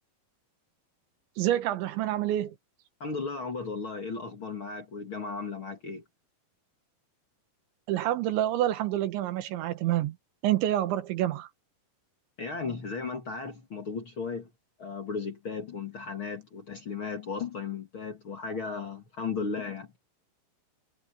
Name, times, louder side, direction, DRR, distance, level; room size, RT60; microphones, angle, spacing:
voice 1, 1.4-2.6 7.9-10.2 10.4-11.5, right 13 dB, 80° right, 3.5 m, -27 dB
voice 2, 3.0-6.0 12.4-14.5 14.8-19.9, left 4 dB, 45° left, 1.8 m, -35 dB
omnidirectional pair, 5.3 m